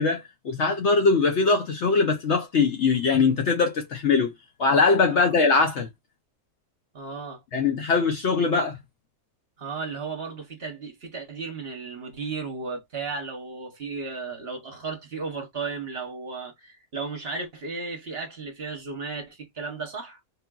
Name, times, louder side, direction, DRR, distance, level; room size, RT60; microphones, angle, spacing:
voice 1, 0.0-4.3 4.6-5.9 7.5-8.8, left 4 dB, 60° left, 0.8 m, -22 dB
voice 2, 6.9-7.4 9.6-20.2, right 4 dB, 45° right, 1.1 m, -34 dB
3.7 x 2.5 x 2.2 m
omnidirectional pair, 1.5 m